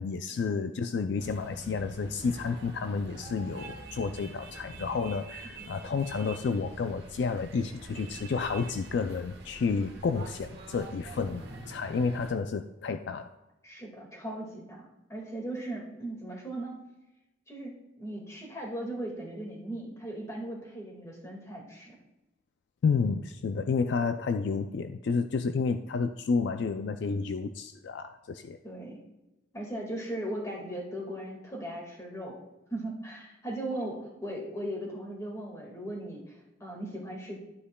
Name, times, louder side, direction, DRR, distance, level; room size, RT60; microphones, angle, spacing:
voice 1, 0.0-13.3 22.8-28.6, left 5 dB, 60° left, 9 dB, 0.3 m, -30 dB
sound 1, 1.2-12.3, right 2 dB, 55° right, 1.3 m, -46 dB
voice 2, 13.6-16.8 17.5-21.9 28.6-29.0 29.5-32.4 32.7-37.4, right 1 dB, 15° left, -1 dB, 1.8 m, -38 dB
12.0 x 8.2 x 2.2 m, 0.99 s
head